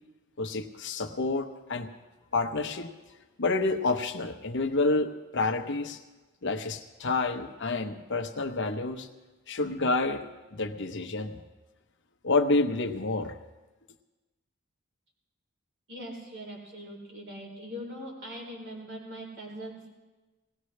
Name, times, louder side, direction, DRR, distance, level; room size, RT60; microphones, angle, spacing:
voice 1, 0.4-1.9 2.3-2.9 3.4-6.0 6.4-9.1 9.5-10.2 10.5-11.4 12.2-13.4, left 3 dB, 55° left, 6 dB, 0.9 m, -28 dB
voice 2, 15.9-19.9, equal, 60° right, -2 dB, 3.9 m, -41 dB
19.5 x 17.5 x 3.3 m, 1.2 s
head